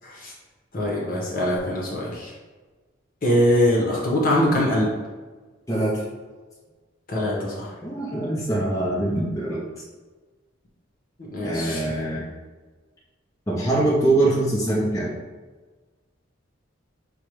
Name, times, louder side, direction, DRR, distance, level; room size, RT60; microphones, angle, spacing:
voice 1, 0.7-2.3 3.2-4.9 7.1-7.7 11.3-11.8, left 1 dB, 45° left, -4 dB, 1.1 m, -22 dB
voice 2, 5.7-6.0 7.8-9.6 11.4-12.2 13.5-15.1, right 2 dB, 15° left, -7 dB, 0.7 m, -23 dB
6.6 x 2.3 x 3.1 m, 1.3 s
head